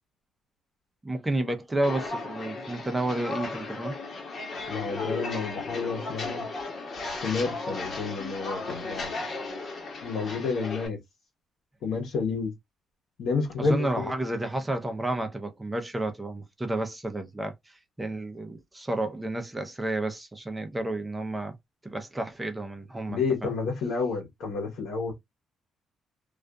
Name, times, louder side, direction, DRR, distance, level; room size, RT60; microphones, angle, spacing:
voice 1, 1.0-4.0 13.6-21.5 21.8-23.5, right 1 dB, 15° right, 0.7 m, -31 dB
Walk footsteps, 1.8-10.9, left 3 dB, 50° left, 1.1 m, -35 dB
voice 2, 4.7-6.5 7.2-9.1 10.0-11.0 11.8-12.5 13.2-14.1 23.1-25.1, left 4 dB, 75° left, 1.0 m, -30 dB
2.4 x 2.4 x 2.2 m
cardioid pair, 90°, 0 cm